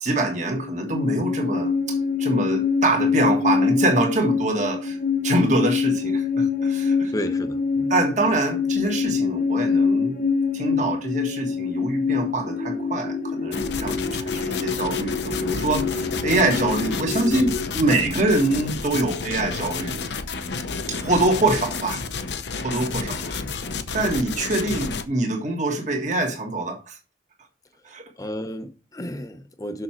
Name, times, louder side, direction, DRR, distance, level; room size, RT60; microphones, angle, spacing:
voice 1, 0.0-5.0 5.2-7.1 7.9-10.2 10.5-20.0 20.9-22.0 22.6-23.4 23.9-27.0 27.8-28.1, right 2 dB, 40° right, 1.6 m, -24 dB
sound 1, 0.5-17.7, left 5 dB, 45° left, 0.9 m, -25 dB
voice 2, 7.1-7.9 28.2-29.8, equal, 20° left, 0.7 m, -32 dB
sound 2, 13.5-25.0, left 4 dB, 65° left, 0.8 m, -31 dB
6.5 x 6.2 x 4.4 m
head